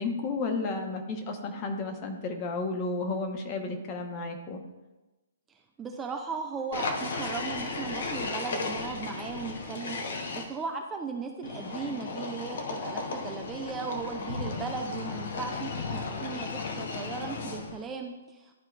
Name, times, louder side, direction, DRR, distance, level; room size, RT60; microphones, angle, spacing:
voice 1, 0.0-4.6, left 3 dB, 30° left, 4 dB, 1.0 m, -32 dB
voice 2, 5.8-18.5, right 5 dB, 15° right, 3 dB, 0.5 m, -37 dB
sound 1, 6.7-10.4 11.4-17.8, left 3 dB, 60° left, 1.0 m, -35 dB
11.5 x 4.3 x 2.4 m, 1.1 s
figure-of-eight pair, 125°, 0 cm